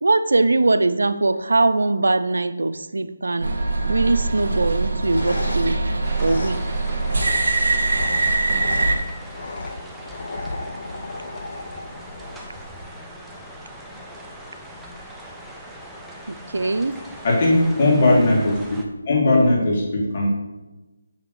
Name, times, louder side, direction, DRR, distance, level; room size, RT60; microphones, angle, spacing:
voice 1, 0.0-3.5 3.9-5.8 6.2-6.6 16.3-16.9, right 2 dB, 80° right, 12 dB, 0.5 m, -21 dB
sound 1, 3.4-9.0, right 3 dB, 65° right, 1.2 m, -22 dB
sound 2, 4.8-12.8, left 2 dB, 60° left, 0.9 m, -35 dB
sound 3, 6.0-18.8, equal, 5° right, 0.7 m, -40 dB
voice 2, 17.2-18.6 19.1-20.3, left 2 dB, 45° left, -3 dB, 2.4 m, -18 dB
7.4 x 3.4 x 6.2 m, 1.1 s
figure-of-eight pair, 160°, 0 cm